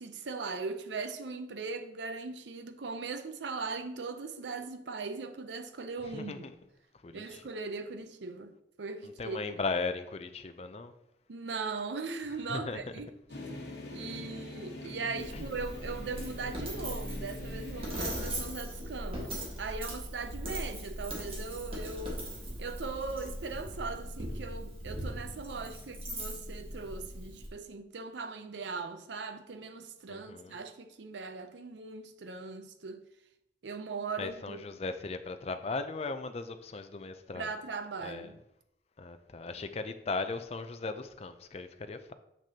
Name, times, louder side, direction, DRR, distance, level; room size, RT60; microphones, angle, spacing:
voice 1, 0.0-6.5 7.1-8.5 8.8-9.5 11.3-13.1 13.9-22.3 22.6-33.0 33.6-34.6 37.3-38.4, right 4 dB, 90° right, 0.6 m, -39 dB
voice 2, 6.0-6.5 7.0-7.4 9.0-10.9 12.5-12.8 14.1-14.2 15.3-15.5 30.1-30.6 34.2-37.5 38.0-38.3 39.0-42.1, left 3 dB, 35° left, 0.4 m, -37 dB
sound 1, 13.3-18.3, left 1 dB, 70° left, 1.2 m, -44 dB
Coin (dropping), 15.2-27.5, right 1 dB, 30° right, 1.5 m, -39 dB
6.8 x 6.2 x 2.8 m
head